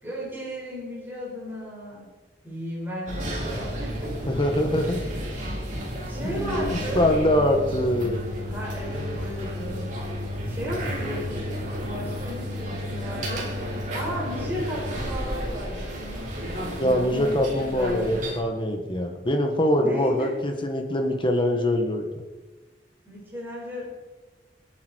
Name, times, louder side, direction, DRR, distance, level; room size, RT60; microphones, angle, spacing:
voice 1, 0.0-2.1 2.4-4.1 6.1-7.1 8.4-9.9 10.5-13.5 13.9-18.2 19.8-20.3 23.1-23.9, equal, 15° right, -6 dB, 5.7 m, -35 dB
sound 1, 3.1-18.4, equal, 45° right, 4.2 m, -32 dB
voice 2, 4.3-5.0 6.2-8.3 16.8-22.1, left 1 dB, 30° left, 4 dB, 1.6 m, -23 dB
27.0 x 9.6 x 4.7 m, 1.2 s
head